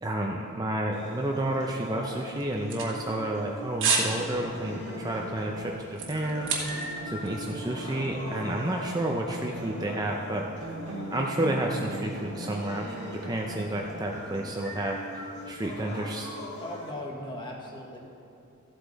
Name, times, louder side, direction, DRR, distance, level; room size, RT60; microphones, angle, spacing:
voice 1, 0.0-6.7 7.0-10.5 11.1-16.4, right 1 dB, 15° right, 0 dB, 0.5 m, -31 dB
sound 1, 0.9-16.9, left 1 dB, 55° left, 1.8 m, -42 dB
sound 2, 2.4-3.4 3.8-4.1 4.5-4.7 5.2-7.0 7.3-7.4, right 5 dB, 55° right, 1.5 m, -29 dB
sound 3, 3.9-10.3 10.6-14.6, right 1 dB, 70° right, 1.8 m, -41 dB
voice 2, 16.6-18.0, left 1 dB, 20° left, -1 dB, 1.4 m, -38 dB
14.5 x 8.0 x 4.0 m, 2.7 s
head